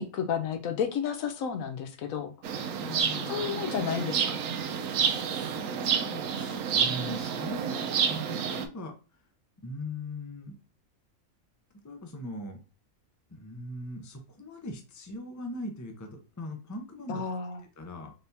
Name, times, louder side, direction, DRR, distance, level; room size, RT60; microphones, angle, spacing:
voice 1, 0.0-2.3 3.3-4.4 17.1-17.6, left 7 dB, 85° left, 7 dB, 1.1 m, -31 dB
sound 1, 2.4-8.6, right 7 dB, 75° right, 1.0 m, -29 dB
voice 2, 2.8-3.4 5.3-9.3 9.6-10.6 11.8-12.6 13.3-17.2 17.8-18.1, left 1 dB, 20° left, 4 dB, 0.5 m, -40 dB
4.1 x 3.4 x 2.7 m, 0.34 s
omnidirectional pair, 1.4 m